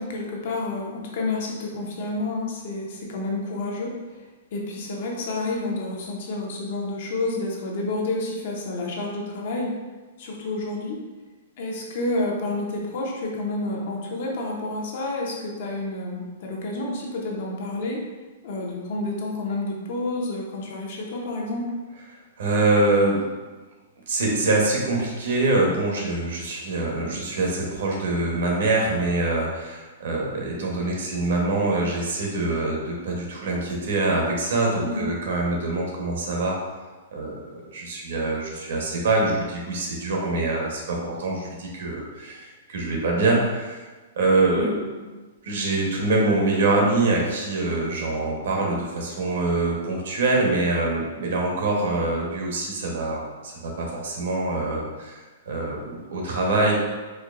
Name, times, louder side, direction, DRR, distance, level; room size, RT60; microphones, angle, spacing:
voice 1, 0.0-3.9 4.5-9.7 10.2-11.0 11.6-18.0 18.4-21.7 34.8-35.0 44.5-45.0, left 2 dB, 50° left, -1 dB, 0.7 m, -29 dB
voice 2, 22.4-23.2 24.1-36.6 37.1-43.8 44.2-44.9 45.4-56.7, right 2 dB, 65° right, -1 dB, 0.9 m, -24 dB
4.4 x 2.6 x 2.4 m, 1.3 s
hypercardioid pair, 165°, 0 cm